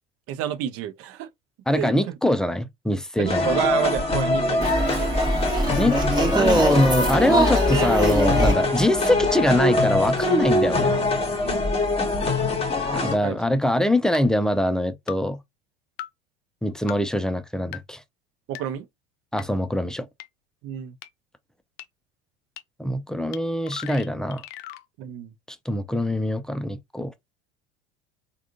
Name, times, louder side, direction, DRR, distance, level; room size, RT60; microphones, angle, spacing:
voice 1, 0.3-1.3 1.7-2.1 3.2-5.4 11.4-11.7 12.9-13.4 18.5-18.9 20.6-21.0 25.0-25.3, right 11 dB, 50° right, 0.6 m, -30 dB
voice 2, 1.7-3.4 5.8-5.9 6.3-10.9 12.9-15.4 16.6-18.0 19.3-20.1 22.8-24.4 25.7-27.1, left 1 dB, ahead, 0.4 m, -23 dB
sound 1, 3.3-13.2, left 2 dB, 20° left, 1.2 m, -23 dB
sound 2, 4.6-9.8, right 1 dB, 15° right, 1.2 m, -24 dB
sound 3, 13.1-13.2 14.1-14.2 15.1-15.2 16.0-16.1 16.9-17.0 17.7-17.8 18.5-18.6 19.4-19.5 20.2-20.3 21.0-21.1 21.8-21.9 22.6-22.7 23.3-23.4 23.6-24.8, left 14 dB, 70° left, 0.5 m, -38 dB
3.5 x 2.4 x 2.5 m
hypercardioid pair, 80°, 30 cm